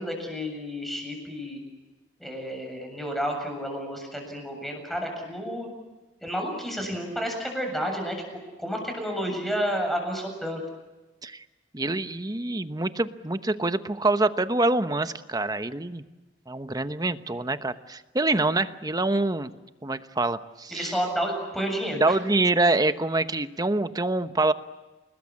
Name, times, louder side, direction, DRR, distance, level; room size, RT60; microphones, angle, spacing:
voice 1, 0.0-1.6 2.2-5.7 6.2-8.2 8.6-10.6 20.7-22.2, equal, ahead, 3 dB, 7.3 m, -31 dB
voice 2, 11.7-16.0 16.5-19.5 19.8-20.9 22.0-24.5, right 2 dB, 20° right, 11 dB, 1.0 m, -25 dB
29.5 x 20.5 x 8.5 m, 1.1 s
head